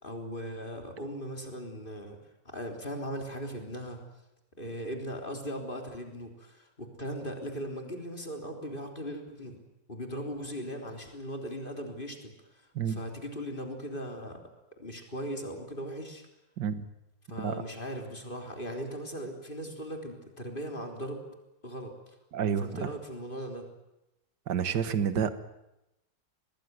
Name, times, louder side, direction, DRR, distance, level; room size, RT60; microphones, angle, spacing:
voice 1, 0.0-2.2 2.5-4.0 4.6-9.6 9.9-14.4 14.8-16.3 17.3-21.2 21.6-22.2 22.6-23.7, equal, 30° left, 3 dB, 3.7 m, -38 dB
voice 2, 22.3-22.9 24.5-25.3, right 8 dB, 70° right, 11 dB, 1.9 m, -29 dB
25.0 x 20.0 x 9.4 m, 0.91 s
omnidirectional pair, 1.9 m